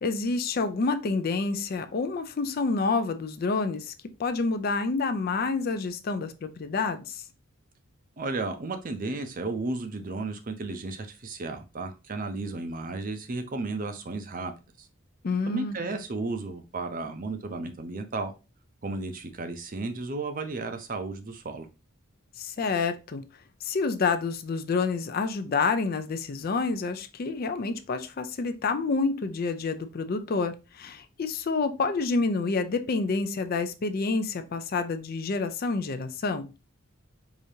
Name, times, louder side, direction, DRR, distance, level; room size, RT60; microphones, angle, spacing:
voice 1, 0.0-3.9 4.2-7.2 15.2-15.8 22.4-23.2 23.6-36.5, left 4 dB, 45° left, 0.4 m, -28 dB
voice 2, 8.2-14.5 14.8-14.9 15.5-18.3 18.8-21.7, right 3 dB, 40° right, 0.5 m, -33 dB
4.9 x 2.7 x 2.7 m
head